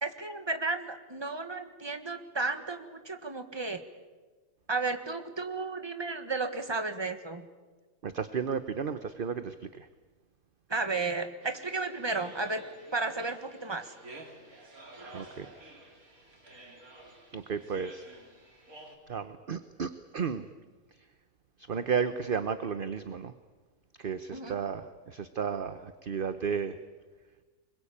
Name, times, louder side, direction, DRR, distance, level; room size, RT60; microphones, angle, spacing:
voice 1, 0.0-3.8 4.7-7.5 10.7-12.6 12.9-13.9 24.3-24.5, right 3 dB, 20° right, 7 dB, 1.6 m, -33 dB
voice 2, 8.0-9.9 15.0-15.5 17.3-18.0 19.1-20.4 21.7-23.3 24.0-26.8, right 6 dB, 45° right, 11 dB, 1.0 m, -33 dB
sound 1, 11.4-19.0, right 2 dB, 80° right, 4.0 m, -51 dB
25.0 x 22.0 x 8.7 m, 1.3 s
omnidirectional pair, 1.5 m